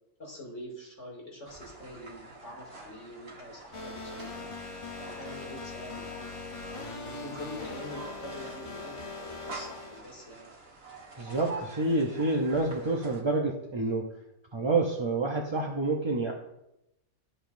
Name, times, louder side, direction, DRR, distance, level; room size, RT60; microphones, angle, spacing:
voice 1, 0.2-4.5 5.0-6.1 6.7-10.5 11.2-11.5, left 1 dB, 55° left, -3 dB, 2.9 m, -45 dB
sound 1, 1.5-13.2, right 3 dB, 45° right, 1.8 m, -47 dB
sound 2, 3.7-10.0, left 3 dB, 30° left, 0.8 m, -41 dB
voice 2, 11.2-14.1 14.5-16.3, right 2 dB, 30° right, 0 dB, 0.6 m, -28 dB
12.5 x 7.8 x 2.6 m, 0.86 s
omnidirectional pair, 1.5 m